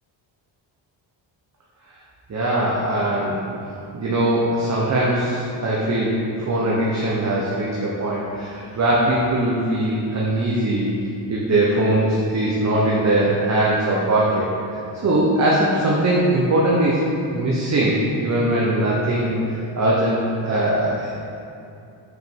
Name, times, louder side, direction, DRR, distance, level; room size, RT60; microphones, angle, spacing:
voice 1, 2.3-3.4 3.9-10.9 11.3-17.0 17.3-21.1, right 1 dB, 35° right, -5 dB, 0.8 m, -21 dB
6.3 x 5.0 x 4.5 m, 2.6 s
wide cardioid pair, 145°, 49 cm